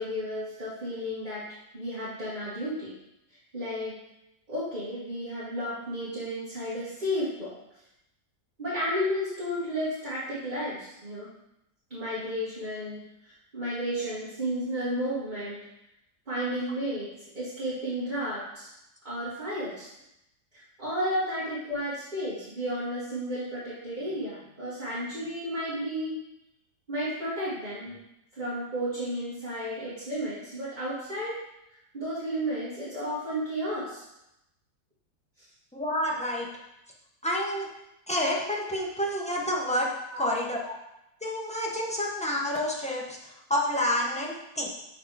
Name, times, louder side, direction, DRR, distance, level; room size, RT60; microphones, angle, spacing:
voice 1, 0.0-1.4 1.7-2.9 3.5-3.9 4.5-7.6 8.6-11.3 11.9-13.0 13.5-15.6 16.3-17.1 17.4-18.7 19.0-19.9 20.8-26.2 26.9-28.0 28.4-31.4 31.9-34.0, equal, 30° right, -11 dB, 1.8 m, -32 dB
voice 2, 35.7-36.5 37.2-37.7 38.1-39.9 40.2-40.6 41.2-44.7, left 1 dB, 5° left, -3 dB, 0.6 m, -29 dB
6.3 x 4.0 x 4.7 m, 0.86 s
omnidirectional pair, 1.7 m